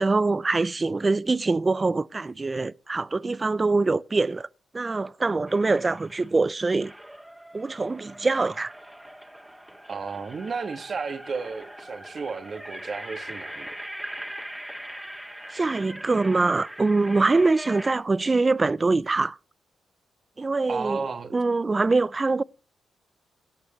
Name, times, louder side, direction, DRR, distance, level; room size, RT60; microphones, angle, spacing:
voice 1, 0.0-4.5 4.7-6.9 7.5-8.7 15.5-19.4 20.4-21.0 21.3-22.4, right 3 dB, 30° right, 0.4 m, -24 dB
sound 1, 5.5-6.4 6.8-18.0, right 1 dB, 5° right, 2.1 m, -41 dB
voice 2, 9.9-13.7 20.7-21.3, right 5 dB, 50° right, 1.6 m, -33 dB
17.5 x 8.4 x 3.1 m
supercardioid pair, 55°, 0 cm